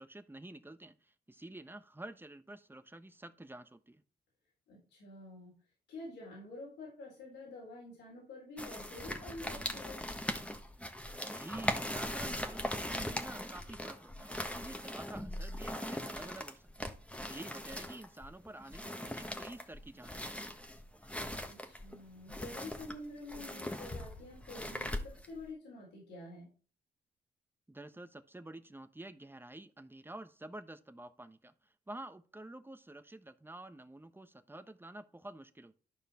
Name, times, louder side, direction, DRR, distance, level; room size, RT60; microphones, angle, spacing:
voice 1, 0.0-4.0 11.3-16.9 17.3-20.5 27.7-35.8, right 1 dB, 10° right, 1.1 m, -49 dB
voice 2, 4.7-5.6 5.9-10.1 21.4-26.5, left 2 dB, 85° left, 4.0 m, -48 dB
sound 1, 8.6-25.4, left 1 dB, 5° left, 1.4 m, -40 dB
Bass drum, 23.9-25.3, left 2 dB, 30° left, 1.5 m, -49 dB
11.5 x 5.1 x 4.4 m
supercardioid pair, 55°, 18 cm